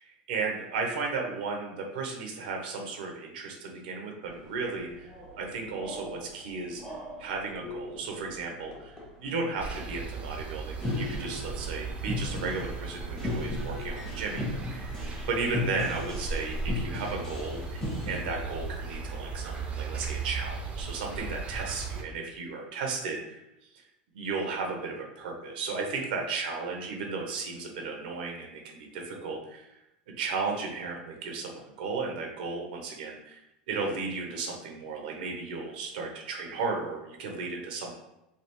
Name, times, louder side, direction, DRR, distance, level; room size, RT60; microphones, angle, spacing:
voice 1, 0.0-14.9 15.3-23.4 23.7-23.9 24.1-29.8 30.2-33.4 33.7-38.0, right 4 dB, 75° right, 1 dB, 0.7 m, -35 dB
sound 1, 4.2-18.2, left 2 dB, 15° left, 1.2 m, -38 dB
sound 2, 9.6-22.0, right 4 dB, 25° right, 0.6 m, -37 dB
3.3 x 2.3 x 3.0 m, 0.90 s
hypercardioid pair, 105°, 5 cm